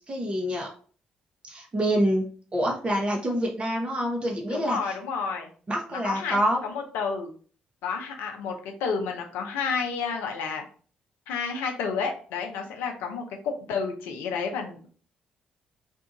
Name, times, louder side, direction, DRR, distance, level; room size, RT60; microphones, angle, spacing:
voice 1, 0.1-0.7 1.5-2.2 2.5-4.9 5.7-6.6, equal, 30° right, 0 dB, 0.9 m, -26 dB
voice 2, 4.5-5.5 6.0-7.3 7.8-10.6 11.3-14.9, left 5 dB, 70° left, 4 dB, 0.5 m, -31 dB
2.6 x 2.4 x 3.8 m, 0.42 s
hypercardioid pair, 45°, 4 cm